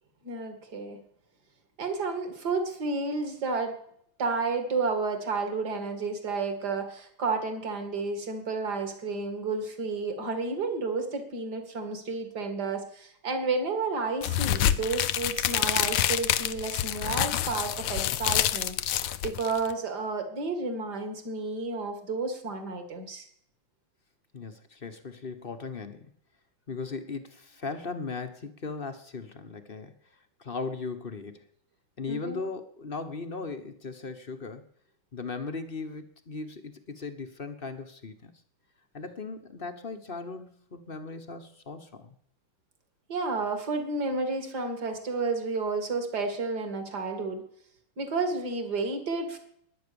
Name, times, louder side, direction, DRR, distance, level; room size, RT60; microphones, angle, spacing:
voice 1, 0.2-1.0 1.8-3.8 4.2-23.3 32.1-32.4 43.1-47.4 48.0-49.4, right 3 dB, 50° right, 7 dB, 2.8 m, -31 dB
sound 1, 14.2-19.7, left 12 dB, 80° left, 1.6 m, -27 dB
voice 2, 24.3-26.1 26.7-30.0 30.4-31.5 32.0-34.7 35.1-38.3 38.9-42.1, left 4 dB, 35° left, 8 dB, 0.9 m, -38 dB
21.0 x 8.9 x 7.0 m, 0.69 s
omnidirectional pair, 2.4 m